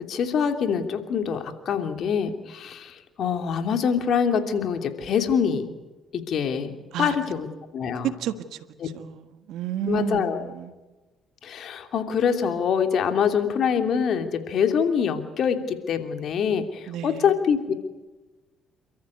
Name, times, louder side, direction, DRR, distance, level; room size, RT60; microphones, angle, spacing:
voice 1, 0.1-5.7 6.1-7.5 7.7-8.1 8.8-8.9 9.9-10.5 11.4-17.7, left 7 dB, 65° left, 7 dB, 2.9 m, -25 dB
voice 2, 8.0-10.7 16.9-17.3, right 10 dB, 75° right, 11 dB, 1.5 m, -32 dB
29.0 x 14.0 x 9.6 m, 1.2 s
supercardioid pair, 60°, 0 cm